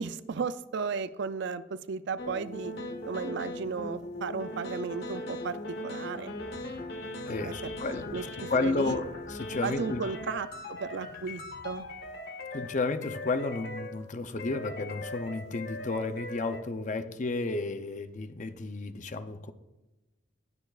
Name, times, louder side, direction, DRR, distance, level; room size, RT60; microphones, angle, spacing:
voice 1, 0.0-2.7 3.1-6.3 7.4-7.5 7.8-9.0 9.6-11.8, right 5 dB, 60° right, 0.4 m, -35 dB
sound 1, 2.2-14.1 14.4-16.6, left 1 dB, 55° left, 1.1 m, -40 dB
sound 2, 6.3-12.1, equal, 85° left, 2.5 m, -52 dB
voice 2, 7.3-8.2 8.5-10.0 12.5-19.5, left 3 dB, 40° left, 0.6 m, -32 dB
19.0 x 6.8 x 2.4 m
head